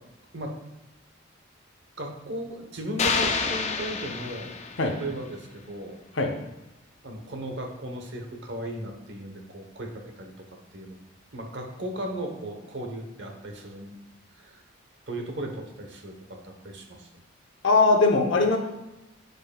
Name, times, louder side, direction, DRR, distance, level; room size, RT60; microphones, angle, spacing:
voice 1, 2.0-4.6 5.0-6.0 7.0-10.5 10.7-11.0 11.3-14.0 14.3-14.6 15.1-16.1 16.4-17.1, right 1 dB, 55° right, 3 dB, 1.0 m, -36 dB
sound 1, 3.0-5.1, left 5 dB, 35° left, 0.4 m, -28 dB
voice 2, 17.6-18.6, left 3 dB, 65° left, 3 dB, 0.8 m, -20 dB
9.1 x 5.3 x 2.3 m, 0.99 s
head